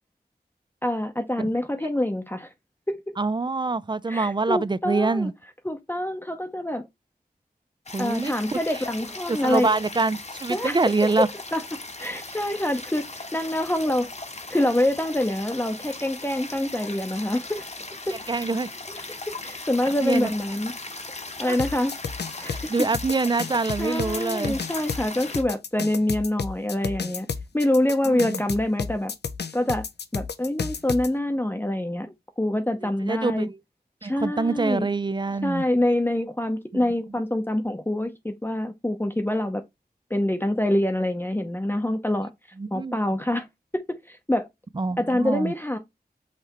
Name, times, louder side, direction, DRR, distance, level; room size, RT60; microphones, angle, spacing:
voice 1, 0.8-2.5 2.9-3.0 4.1-5.3 5.6-6.8 8.0-9.8 10.5-11.6 12.0-14.1 14.5-17.6 18.1-18.4 19.4-20.7 21.4-21.9 22.4-22.9 23.8-27.3 27.5-29.1 29.5-29.9 30.1-33.5 34.0-34.9 35.4-39.6 40.1-42.3 42.7-43.5 43.7-44.5 45.0-45.8, left 1 dB, 10° left, 0.6 m, -26 dB
voice 2, 3.2-5.3 7.9-8.6 9.3-11.3 18.3-18.7 20.0-20.3 21.5-21.6 22.4-24.6 28.1-28.4 33.1-33.6 34.0-35.7 42.6-43.0 44.8-45.5, right 3 dB, 25° right, 0.3 m, -25 dB
sound 1, 7.9-25.4, left 2 dB, 40° left, 0.9 m, -38 dB
sound 2, 21.6-31.1, left 5 dB, 80° left, 0.5 m, -31 dB
5.7 x 3.2 x 3.0 m
wide cardioid pair, 45°, 17 cm